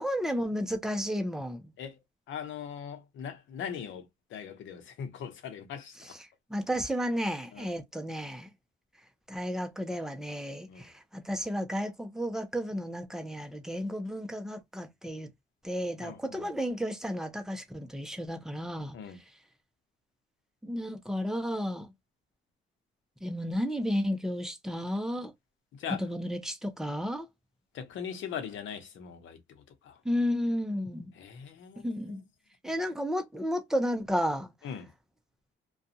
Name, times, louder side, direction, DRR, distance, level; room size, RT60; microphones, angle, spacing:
voice 1, 0.0-1.6 6.0-6.2 6.5-8.5 9.3-15.3 15.6-19.0 20.6-21.9 23.2-25.3 26.0-27.3 30.0-31.1 31.8-32.2 32.6-34.5, equal, 5° right, 0.7 m, -32 dB
voice 2, 2.3-4.0 4.3-5.9 7.5-7.7 10.7-10.8 16.0-16.5 18.9-19.2 25.8-26.0 27.7-29.4 29.9-30.0 31.2-32.2 34.6-34.9, left 7 dB, 75° left, 0.8 m, -40 dB
2.5 x 2.3 x 2.7 m
cardioid pair, 90°, 20 cm